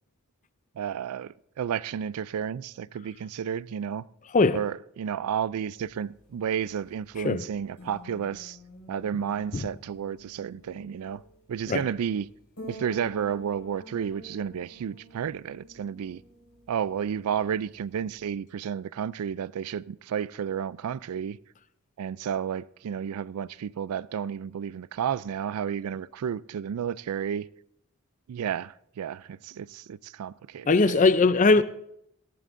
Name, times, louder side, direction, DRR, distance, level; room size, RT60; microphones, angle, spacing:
voice 1, 0.8-4.0 4.5-8.6 8.9-11.2 11.5-12.3 12.7-16.2 16.7-21.4 22.0-27.5 28.3-31.0, right 8 dB, 80° right, 0.4 m, -32 dB
sound 1, 5.7-18.2, equal, 85° left, 5.6 m, -49 dB
voice 2, 30.7-31.6, left 3 dB, 35° left, 0.5 m, -20 dB
18.0 x 15.0 x 2.6 m
head